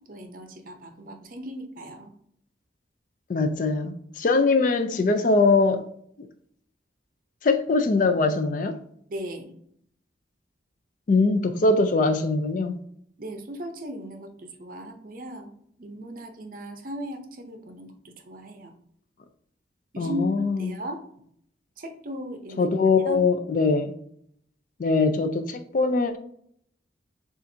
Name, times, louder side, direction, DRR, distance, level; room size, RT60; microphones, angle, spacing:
voice 1, 0.1-2.1 9.1-9.5 13.2-18.7 19.9-20.3 20.6-21.0 21.8-22.7 23.1-23.3, equal, 45° right, 6 dB, 0.6 m, -37 dB
voice 2, 3.3-5.8 7.4-8.7 11.1-12.7 20.0-20.7 22.6-23.9 24.8-26.2, left 3 dB, 45° left, 8 dB, 0.4 m, -22 dB
7.0 x 2.5 x 2.6 m, 0.67 s
head